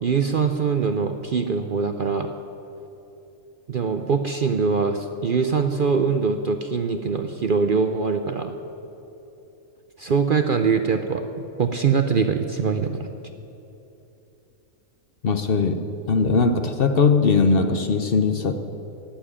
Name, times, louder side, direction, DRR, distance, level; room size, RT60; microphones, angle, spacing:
voice 1, 0.0-2.3 3.7-8.5 10.0-11.2 11.6-13.1, right 5 dB, 50° right, 7 dB, 0.7 m, -23 dB
voice 2, 15.2-18.5, left 4 dB, 50° left, 8 dB, 0.9 m, -20 dB
16.5 x 7.3 x 10.0 m, 2.9 s
omnidirectional pair, 1.5 m